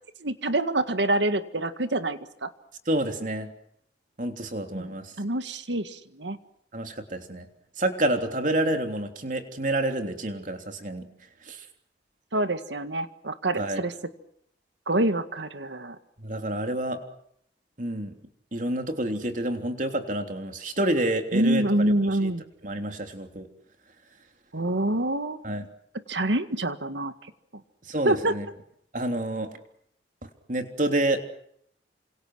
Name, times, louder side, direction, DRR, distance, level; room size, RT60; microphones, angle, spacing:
voice 1, 0.2-2.5 4.7-6.4 12.3-13.9 14.9-16.0 21.3-22.4 24.5-25.4 26.1-27.1 28.0-28.3, right 1 dB, 80° right, 10 dB, 1.9 m, -26 dB
voice 2, 2.9-3.5 4.2-5.1 6.7-7.5 7.8-11.0 11.5-11.6 13.6-13.8 16.2-17.1 17.8-18.1 18.5-21.6 22.2-22.3 22.6-23.5 25.4-25.6 27.9-28.4 28.9-29.5 30.5-31.2, right 1 dB, 45° right, 5 dB, 3.3 m, -28 dB
29.0 x 26.5 x 6.4 m, 0.70 s
head